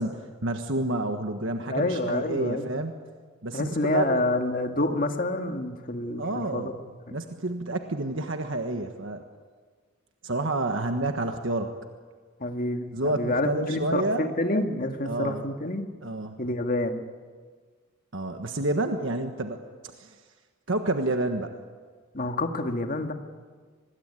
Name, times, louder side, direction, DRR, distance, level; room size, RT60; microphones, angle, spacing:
voice 1, 0.0-2.9 3.4-4.2 6.2-6.7 7.1-9.3 10.2-11.7 12.9-14.3 15.0-15.4 16.0-16.4 18.1-19.6 19.8-20.1 20.7-21.5, right 2 dB, 60° right, 5 dB, 1.5 m, -29 dB
voice 2, 1.7-2.7 3.5-6.7 7.1-7.2 12.4-15.9 16.4-17.0 22.1-23.1, left 2 dB, 40° left, 5 dB, 1.9 m, -28 dB
25.0 x 21.0 x 9.8 m, 1.5 s
head